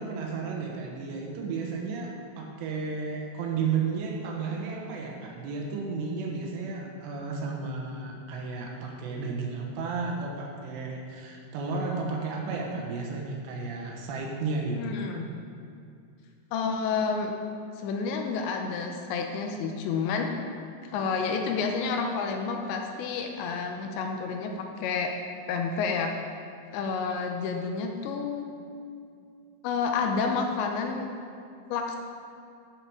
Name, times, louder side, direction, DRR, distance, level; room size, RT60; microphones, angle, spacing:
voice 1, 0.0-15.0, right 4 dB, 75° right, 0 dB, 3.0 m, -33 dB
voice 2, 14.8-15.3 16.5-17.3 17.8-20.3 20.9-25.1 25.5-26.1 26.7-28.5 29.6-31.1 31.7-32.0, left 5 dB, 85° left, 3 dB, 2.9 m, -29 dB
11.0 x 6.7 x 4.7 m, 2.4 s
omnidirectional pair, 5.3 m